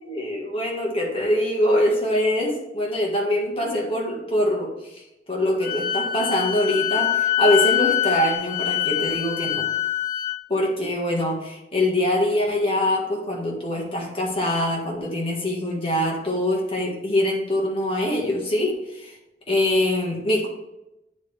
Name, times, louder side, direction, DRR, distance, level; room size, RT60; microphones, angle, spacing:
voice 1, 0.0-5.0 5.3-9.7 10.5-19.2 19.5-20.5, left 1 dB, 35° left, -2 dB, 1.6 m, -24 dB
Wind instrument woodwind instrument, 5.6-10.4, left 11 dB, 50° left, 0.4 m, -24 dB
9.1 x 4.2 x 3.3 m, 0.91 s
head